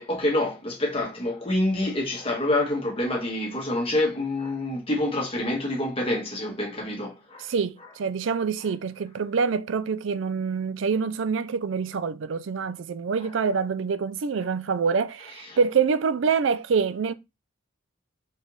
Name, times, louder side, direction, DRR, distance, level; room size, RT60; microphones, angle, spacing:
voice 1, 0.0-7.5 13.2-13.3 15.5-15.6, left 1 dB, 30° left, 1.6 m, -27 dB
voice 2, 7.5-17.1, right 5 dB, 70° right, 0.4 m, -26 dB
4.3 x 3.3 x 3.1 m
head